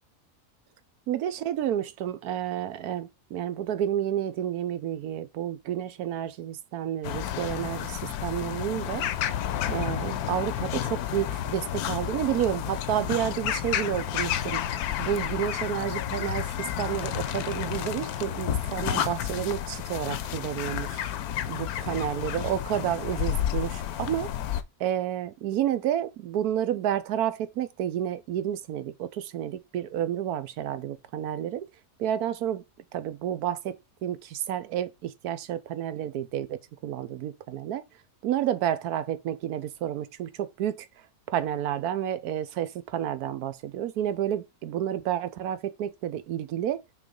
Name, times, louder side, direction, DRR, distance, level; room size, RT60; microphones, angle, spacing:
voice 1, 1.1-9.1 9.7-21.0 21.5-24.3 24.8-31.7 32.0-32.6 32.9-33.8 34.0-37.8 38.2-40.8 41.3-46.8, right 11 dB, 85° right, 1.2 m, -30 dB
sound 1, 7.0-24.6, left 11 dB, 80° left, 1.1 m, -31 dB
6.1 x 3.4 x 5.1 m
omnidirectional pair, 1.6 m